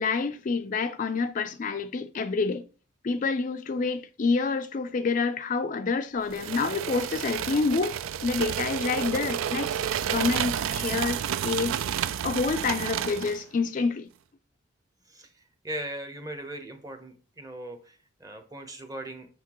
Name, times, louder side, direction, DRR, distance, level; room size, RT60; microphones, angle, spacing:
voice 1, 0.0-2.7 3.0-8.0 8.2-9.8 10.1-11.8 12.2-14.1, left 4 dB, 40° left, 0.4 m, -28 dB
sound 1, 6.3-13.4, right 9 dB, 85° right, 0.3 m, -30 dB
voice 2, 15.1-19.3, right 1 dB, 20° right, 0.9 m, -39 dB
6.5 x 5.8 x 3.0 m
head